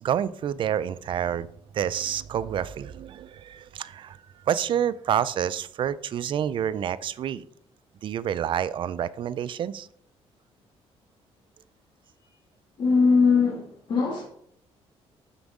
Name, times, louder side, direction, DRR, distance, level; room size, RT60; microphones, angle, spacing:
voice 1, 0.0-1.5 1.7-4.2 4.5-7.4 8.0-9.9, right 9 dB, 50° right, 0.4 m, -28 dB
voice 2, 12.8-14.2, left 4 dB, 50° left, 2.0 m, -21 dB
7.7 x 6.2 x 3.6 m
cardioid pair, 130°, 11 cm